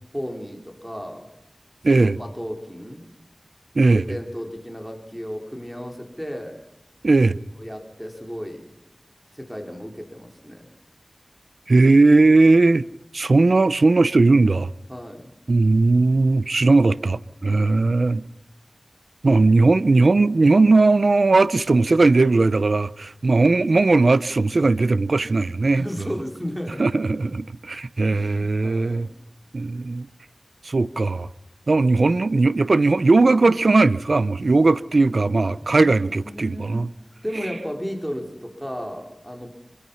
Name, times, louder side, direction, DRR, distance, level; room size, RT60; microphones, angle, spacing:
voice 1, 0.1-1.3 1.9-3.0 3.9-6.6 7.5-8.7 9.3-10.7 12.5-12.6 14.9-15.3 17.5-17.9 25.8-27.3 28.1-29.1 31.9-32.1 35.6-36.9 37.2-39.5, equal, 5° right, 5.0 m, -34 dB
voice 2, 1.8-2.2 3.8-4.0 7.0-7.4 11.7-12.8 13.1-14.7 15.5-18.2 19.2-25.8 26.8-29.1 29.5-30.1 30.6-31.3 31.7-36.9, right 3 dB, 85° right, 0.7 m, -18 dB
25.5 x 22.5 x 5.8 m
wide cardioid pair, 40°, 0 cm